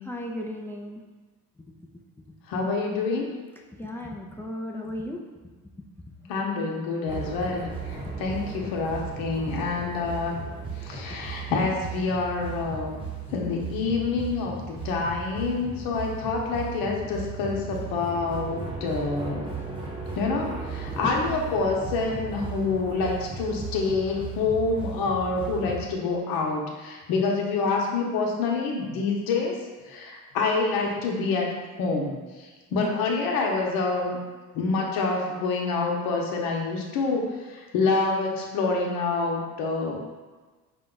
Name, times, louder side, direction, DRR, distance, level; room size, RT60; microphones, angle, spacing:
voice 1, 0.0-1.0 3.8-5.2 6.2-6.3 20.9-21.2 32.7-33.1, left 1 dB, 5° left, 0 dB, 0.3 m, -35 dB
voice 2, 2.5-3.3 6.3-10.3 10.8-12.9 13.3-19.5 20.2-29.6 29.9-34.2 34.5-40.0, left 4 dB, 90° left, 0 dB, 0.9 m, -27 dB
sound 1, 7.1-25.9, right 4 dB, 15° right, 0.7 m, -36 dB
5.1 x 2.3 x 3.8 m, 1.3 s
cardioid pair, 110°, 34 cm